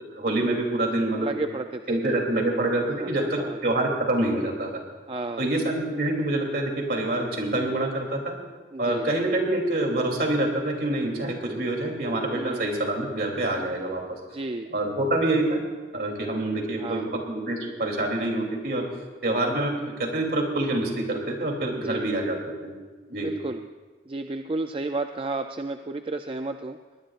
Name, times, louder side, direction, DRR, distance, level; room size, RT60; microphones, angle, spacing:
voice 1, 0.0-1.3 1.9-4.8 5.4-8.3 8.8-14.0 14.7-15.6 15.9-18.8 19.2-22.3 22.6-22.7 23.1-23.3, right 1 dB, 60° right, 1 dB, 3.0 m, -26 dB
voice 2, 1.2-2.5 3.0-3.6 5.1-5.5 8.7-9.1 12.3-12.7 14.3-14.7 16.8-17.1 21.7-22.1 23.1-23.6 24.1-26.8, right 2 dB, 30° right, 7 dB, 0.4 m, -32 dB
21.5 x 19.0 x 2.5 m, 1.4 s
head